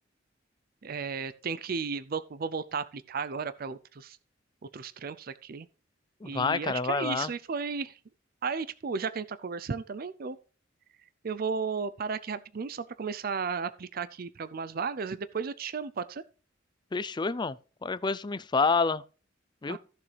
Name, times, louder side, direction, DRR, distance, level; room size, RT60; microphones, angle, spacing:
voice 1, 0.8-4.2 4.7-5.7 6.2-8.0 8.4-10.4 11.2-16.2 19.7-19.8, right 5 dB, 50° right, 0.5 m, -34 dB
voice 2, 6.2-7.3 16.9-17.6 17.8-19.0 19.6-19.8, left 4 dB, 25° left, 0.4 m, -28 dB
14.0 x 6.9 x 3.3 m
head